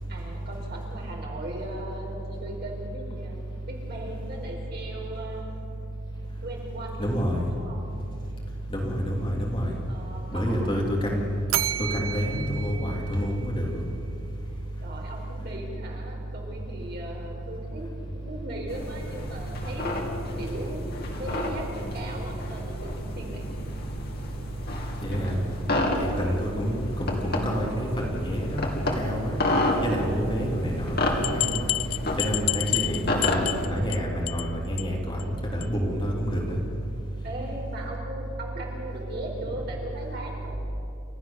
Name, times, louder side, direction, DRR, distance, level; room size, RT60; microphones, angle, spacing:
voice 1, 0.1-5.5 6.4-8.0 9.9-10.9 14.8-20.0 20.4-23.6 25.8-26.2 37.2-40.6, right 1 dB, 50° right, -1 dB, 4.9 m, -38 dB
voice 2, 7.0-7.4 8.7-9.7 10.3-11.2 11.9-13.7 25.0-25.3 26.2-28.7 29.0-29.3 29.8-31.7 32.2-35.2 35.5-36.6, equal, 25° left, -2 dB, 3.3 m, -28 dB
Bell, 11.5-13.8, right 11 dB, 75° right, 0.7 m, -32 dB
sound 1, 18.7-33.7, left 1 dB, 45° left, 2.5 m, -31 dB
sound 2, 31.2-34.0 34.3-34.5 34.8-34.9 35.2-35.3 35.6-35.7, left 19 dB, 80° left, 0.4 m, -29 dB
30.0 x 14.0 x 7.3 m, 2.7 s
head